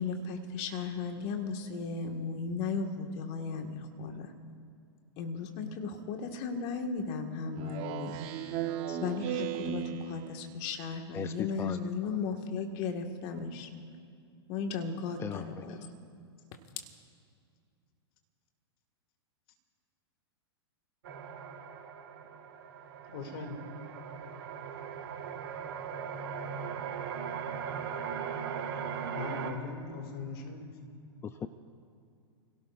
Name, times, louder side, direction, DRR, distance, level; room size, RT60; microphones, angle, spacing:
voice 1, 0.0-4.3 5.2-8.6 8.9-13.7 14.5-15.9, left 5 dB, 45° left, 4 dB, 1.8 m, -36 dB
Speech synthesizer, 7.6-10.6, right 9 dB, 45° right, 1.1 m, -36 dB
voice 2, 11.1-11.8 15.2-15.6 31.2-31.5, left 7 dB, 20° left, 10 dB, 0.5 m, -38 dB
sound 1, 21.0-29.5, right 7 dB, 60° right, 2.7 m, -39 dB
voice 3, 23.1-23.7 29.1-30.7, left 4 dB, 65° left, 4 dB, 2.7 m, -39 dB
29.5 x 17.5 x 2.6 m, 2.4 s
hypercardioid pair, 115°, 14 cm